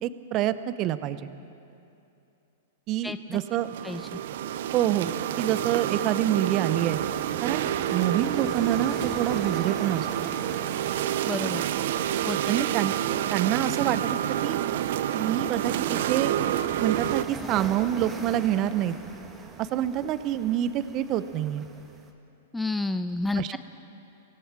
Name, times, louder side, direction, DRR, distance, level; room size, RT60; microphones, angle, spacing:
voice 1, 0.0-1.3 2.9-3.7 4.7-7.0 7.4-10.1 12.5-13.0 13.3-14.6 15.1-16.4 16.8-19.0 19.6-21.6 23.4-23.6, right 12 dB, 40° right, 13 dB, 0.9 m, -27 dB
voice 2, 3.0-3.4 3.8-4.0 11.3-11.6 12.2-12.4 22.5-23.6, left 2 dB, 5° left, 10 dB, 0.5 m, -30 dB
sound 1, 3.5-17.2, right 11 dB, 65° right, 0.6 m, -28 dB
sound 2, 6.9-22.1, right 4 dB, 20° right, 1.9 m, -42 dB
24.5 x 17.5 x 6.1 m, 2.7 s
hypercardioid pair, 115°, 0 cm